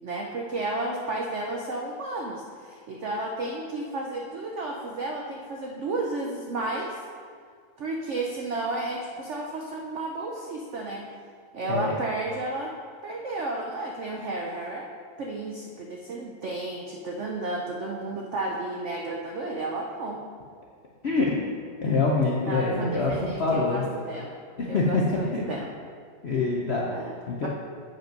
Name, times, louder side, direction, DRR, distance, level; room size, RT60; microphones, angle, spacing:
voice 1, 0.0-7.0 7.8-11.1 11.5-12.7 13.0-14.9 15.2-20.2 22.5-24.4 24.7-25.7 26.9-27.2 27.4-27.5, right 2 dB, 70° right, -1 dB, 0.6 m, -32 dB
voice 2, 21.8-23.8 24.6-25.0 25.3-25.4 26.2-26.8 27.3-27.5, left 3 dB, 65° left, -3 dB, 0.6 m, -25 dB
7.6 x 5.3 x 5.2 m, 2.1 s
omnidirectional pair, 2.1 m